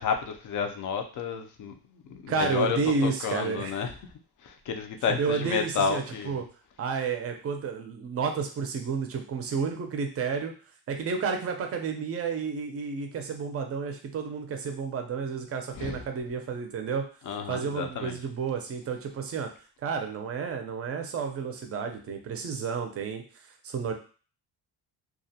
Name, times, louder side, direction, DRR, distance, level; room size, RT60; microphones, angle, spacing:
voice 1, 0.0-3.9 4.4-6.4 15.8-16.0 17.3-18.2, left 6 dB, 50° left, 5 dB, 0.4 m, -31 dB
voice 2, 2.3-3.7 5.2-6.4 6.8-10.5 10.9-17.0 17.5-19.5 19.8-23.2 23.6-23.9, right 5 dB, 35° right, 5 dB, 0.4 m, -31 dB
2.4 x 2.1 x 2.7 m, 0.38 s
cardioid pair, 140°, 41 cm